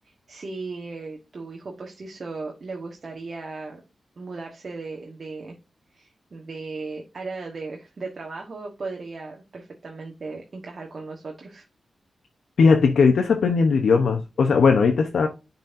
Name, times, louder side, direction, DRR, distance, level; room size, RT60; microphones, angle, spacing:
voice 1, 0.0-3.8 4.2-5.6 5.9-11.7, right 3 dB, 50° right, 1.3 m, -36 dB
voice 2, 12.6-15.3, left 5 dB, 80° left, 0.8 m, -18 dB
10.5 x 4.1 x 2.6 m
wide cardioid pair, 120°, 0 cm